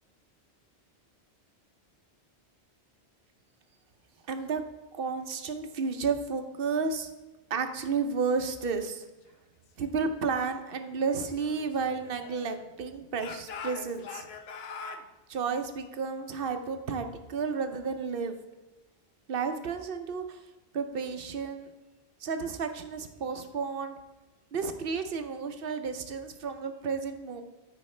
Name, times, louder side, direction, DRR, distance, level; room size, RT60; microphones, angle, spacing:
voice 1, 4.3-4.6 4.9-7.1 7.5-9.1 9.8-14.3 15.3-18.4 19.3-20.4 20.7-21.7 22.2-24.0 24.5-27.4, right 5 dB, 60° right, 7 dB, 0.8 m, -32 dB
Speech / Shout, 11.2-12.7 13.1-15.0, left 5 dB, 70° left, 0.9 m, -43 dB
13.0 x 5.1 x 3.2 m, 1.1 s
omnidirectional pair, 1.1 m